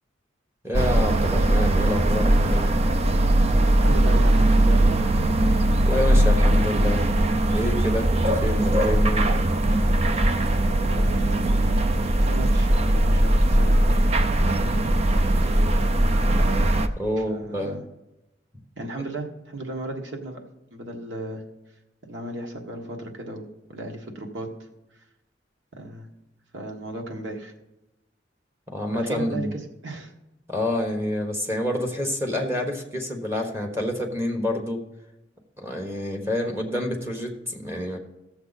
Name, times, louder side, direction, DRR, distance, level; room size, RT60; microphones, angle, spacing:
voice 1, 0.6-2.7 5.8-7.0 7.5-9.3 17.0-17.8 28.7-29.5 30.5-34.8 35.6-38.0, left 1 dB, 15° right, 1 dB, 1.3 m, -27 dB
sound 1, 0.7-16.9, right 1 dB, 35° right, 0.5 m, -20 dB
voice 2, 3.8-5.0 10.8-11.5 11.8-14.0 14.8-15.7 17.2-17.8 18.8-20.4 20.7-21.4 22.0-24.5 25.8-26.1 26.5-27.5 28.9-30.1, right 1 dB, 90° right, 3 dB, 1.5 m, -35 dB
16.5 x 7.0 x 4.1 m, 0.95 s
head